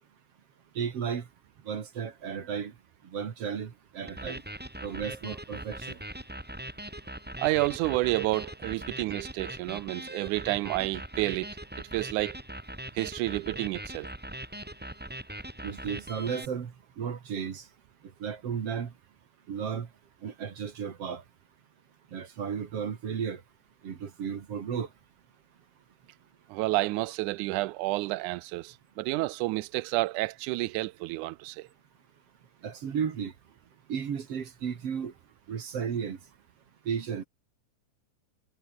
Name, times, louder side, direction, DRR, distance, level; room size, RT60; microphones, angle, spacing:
voice 1, 0.7-1.3 1.6-2.7 3.0-4.4 4.8-6.0 15.6-17.7 18.2-18.9 19.5-19.9 20.2-21.2 22.1-23.4 23.8-24.9 32.6-33.3 33.9-35.1 35.5-36.2 36.9-37.2, right 7 dB, 55° right, 2.9 m, -34 dB
sound 1, 4.1-16.4, right 1 dB, 10° right, 0.5 m, -41 dB
voice 2, 7.4-11.5 11.8-12.4 13.0-14.1 26.5-31.7, right 20 dB, 85° right, 2.1 m, -30 dB
omnidirectional pair, 3.5 m